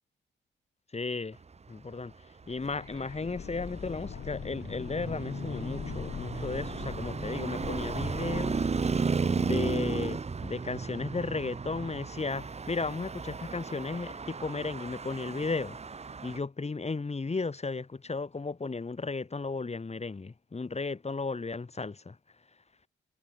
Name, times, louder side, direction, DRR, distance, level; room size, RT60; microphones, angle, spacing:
voice 1, 0.9-1.4 1.7-8.7 9.4-15.8 16.2-22.2, left 3 dB, 35° left, 6.5 m, -35 dB
sound 1, 2.4-10.3 10.5-10.6, left 7 dB, 65° left, 5.9 m, -42 dB
Traffic noise roadway noise, 2.7-16.4, right 4 dB, 35° right, 1.2 m, -34 dB
supercardioid pair, 60°, 19 cm